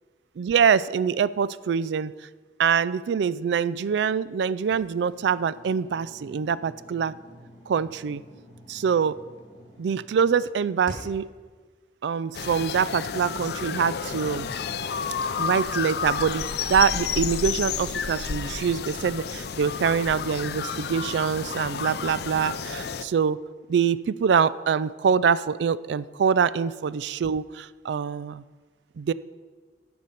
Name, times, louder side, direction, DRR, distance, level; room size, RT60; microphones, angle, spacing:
voice 1, 0.4-2.1 2.6-7.2 7.7-8.2 8.7-9.2 9.8-11.3 12.0-14.5 15.4-23.4 23.7-28.4 29.0-29.1, right 6 dB, 70° right, 18 dB, 0.3 m, -24 dB
sound 1, 4.6-11.3, equal, 25° left, 3.3 m, -48 dB
sound 2, 12.3-23.1, left 6 dB, 60° left, 0.4 m, -31 dB
11.5 x 6.6 x 5.6 m, 1.4 s
head